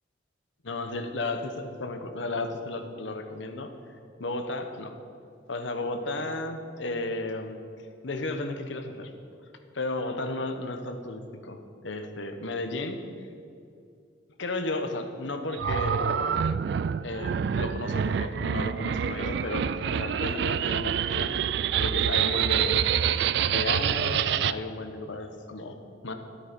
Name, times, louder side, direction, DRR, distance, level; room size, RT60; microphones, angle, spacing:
voice 1, 0.6-3.7 4.2-5.0 5.5-7.6 8.0-9.1 9.7-13.0 14.4-16.5 17.0-21.4 21.8-22.9 23.5-26.1, left 2 dB, 80° left, 7 dB, 1.0 m, -33 dB
sound 1, 15.5-24.5, right 8 dB, 65° right, 0.3 m, -27 dB
12.5 x 8.5 x 5.2 m, 2.5 s
head